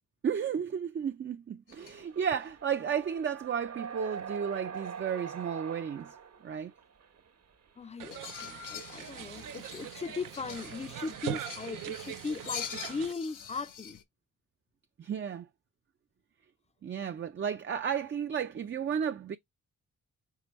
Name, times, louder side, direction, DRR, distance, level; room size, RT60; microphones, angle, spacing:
voice 1, 0.2-6.1 6.4-6.7 15.0-15.5 16.8-19.4, right 7 dB, 35° right, 0.4 m, -33 dB
sound 1, 1.7-2.0 2.3-2.5 8.1-14.0, left 9 dB, 70° left, 0.8 m, -45 dB
sound 2, 1.7-7.3 8.1-8.2 8.6-8.7 8.9-9.0 10.3-11.4, right 6 dB, 55° right, 0.9 m, -44 dB
voice 2, 7.8-14.0, left 4 dB, 20° left, 0.4 m, -38 dB
sound 3, 8.0-13.1, right 11 dB, 80° right, 0.6 m, -41 dB
4.7 x 3.3 x 3.0 m
cardioid pair, 55°, 32 cm